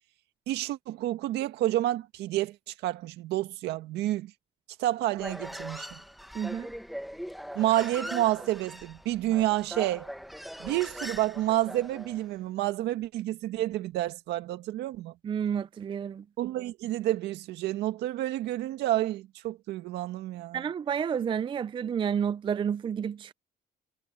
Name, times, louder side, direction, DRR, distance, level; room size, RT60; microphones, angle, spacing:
voice 1, 0.5-4.3 4.8-6.0 7.6-10.1 10.6-15.1 16.4-20.6, right 15 dB, 80° right, 1.9 m, -29 dB
Human voice, 5.1-12.2, equal, ahead, 1.6 m, -41 dB
voice 2, 6.3-6.7 15.2-16.2 20.5-23.3, right 8 dB, 30° right, 0.4 m, -30 dB
cardioid pair, 110°, 17 cm